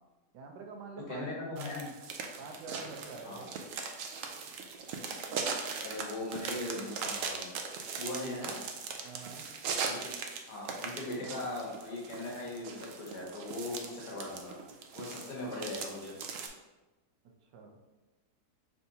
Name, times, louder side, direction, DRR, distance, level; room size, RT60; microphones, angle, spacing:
voice 1, 0.3-1.3 1.5-1.7 2.4-3.5 9.0-9.5 17.5-17.8, right 4 dB, 85° right, 2 dB, 1.3 m, -46 dB
voice 2, 1.1-1.9 3.2-3.4 5.8-7.5 8.0-8.6 9.8-10.1 10.5-14.6 14.9-16.2, left 2 dB, 80° left, -2 dB, 1.8 m, -39 dB
sound 1, 1.6-16.5, right 5 dB, 70° right, 0.8 m, -39 dB
5.6 x 3.4 x 2.7 m, 1.1 s
omnidirectional pair, 1.8 m